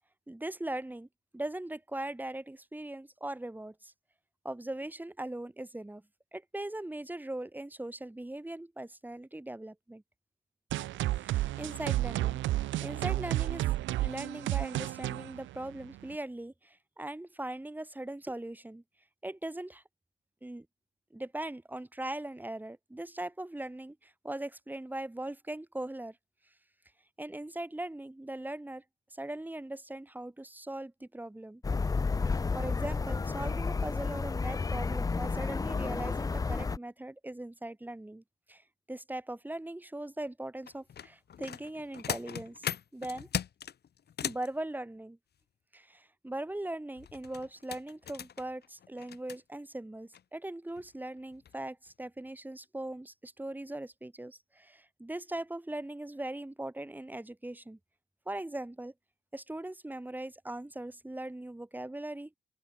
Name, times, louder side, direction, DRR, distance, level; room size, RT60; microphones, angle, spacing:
voice 1, 0.3-1.1 1.3-3.9 4.5-6.0 6.3-10.0 11.2-12.4 12.8-13.7 14.0-18.8 19.2-19.8 20.4-20.7 21.1-26.2 27.2-28.8 29.1-31.6 32.2-43.3 44.2-45.2 45.7-57.8 58.3-58.9 59.3-62.3, right 1 dB, 10° right, 1.6 m, -40 dB
sound 1, 10.7-16.2, right 15 dB, 75° right, 0.5 m, -32 dB
sound 2, 31.6-36.8, left 4 dB, 20° left, 0.4 m, -31 dB
sound 3, 40.7-44.5 47.0-49.4 50.1-50.2 50.7-50.9 51.3-51.6 51.9-52.0, left 9 dB, 55° left, 2.0 m, -39 dB
open air
cardioid pair, 90°, 20 cm